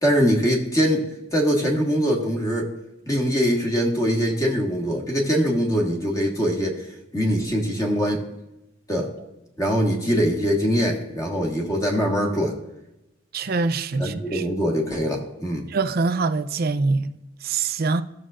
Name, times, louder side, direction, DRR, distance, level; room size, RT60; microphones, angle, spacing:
voice 1, 0.0-2.7 3.1-6.8 7.1-8.2 8.9-9.1 9.6-12.5 14.0-15.7, equal, 20° left, 1.5 m, -22 dB
voice 2, 13.3-14.4 15.7-18.0, right 4 dB, 55° right, 0.5 m, -24 dB
14.5 x 6.6 x 2.5 m
head